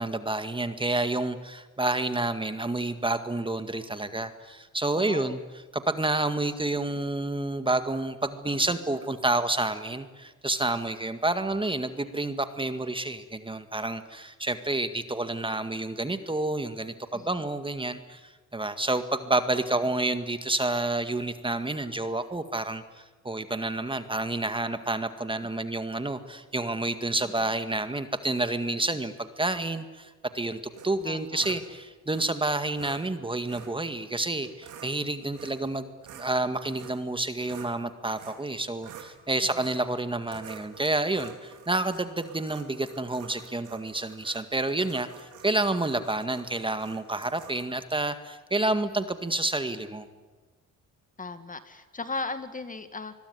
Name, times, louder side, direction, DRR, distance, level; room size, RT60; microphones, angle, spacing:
voice 1, 0.0-5.4 5.7-50.1, right 2 dB, 15° right, 9 dB, 1.9 m, -29 dB
voice 2, 4.9-5.4 17.1-17.4 27.2-27.4 31.0-31.4 39.4-39.6 51.2-53.1, left 3 dB, 25° left, 10 dB, 2.0 m, -37 dB
sound 1, 30.7-31.6 32.1-32.3 32.7-33.0 33.4-33.7 34.4-34.9 35.3-35.7 36.0-37.8 38.1-38.5 38.8-39.1 39.5-39.8 40.2-47.6, right 9 dB, 85° right, 4.0 m, -47 dB
25.5 x 22.0 x 9.7 m, 1.3 s
cardioid pair, 90°, 30 cm